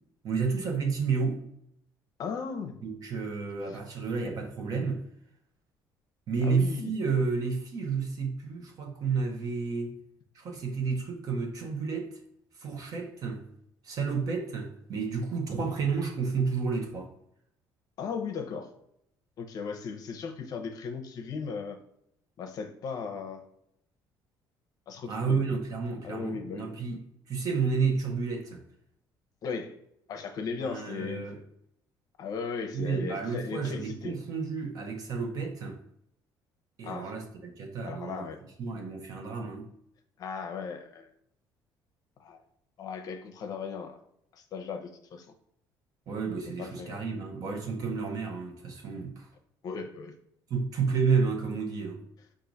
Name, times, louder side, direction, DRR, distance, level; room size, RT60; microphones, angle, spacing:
voice 1, 0.2-1.4 2.8-5.1 6.3-10.0 10.3-12.2 12.6-13.5 13.8-17.1 25.1-28.6 30.6-31.4 32.7-35.8 36.8-38.3 38.6-39.7 46.1-49.3 50.5-52.0, right 5 dB, 45° right, 0.9 m, -31 dB
voice 2, 2.2-2.8 6.4-6.9 18.0-18.7 19.4-21.8 22.4-23.4 24.9-25.4 26.0-26.7 29.4-29.8 30.1-31.3 32.2-34.2 36.8-37.1 37.9-38.4 40.2-41.1 42.2-42.4 42.8-44.0 44.3-45.3 46.6-47.0 49.6-50.1, left 5 dB, 50° left, 0.7 m, -37 dB
4.6 x 2.5 x 3.9 m
cardioid pair, 140°, 8 cm